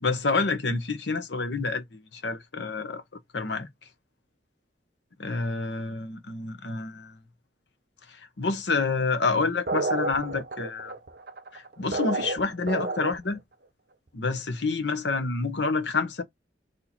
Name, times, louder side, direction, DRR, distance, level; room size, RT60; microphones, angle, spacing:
voice 1, 0.0-3.0 3.3-3.7 5.2-7.2 8.1-10.9 11.5-13.4 14.1-16.2, left 4 dB, 80° left, 1.0 m, -28 dB
sound 1, 9.7-13.4, right 2 dB, 60° right, 0.8 m, -30 dB
4.3 x 2.8 x 4.3 m
head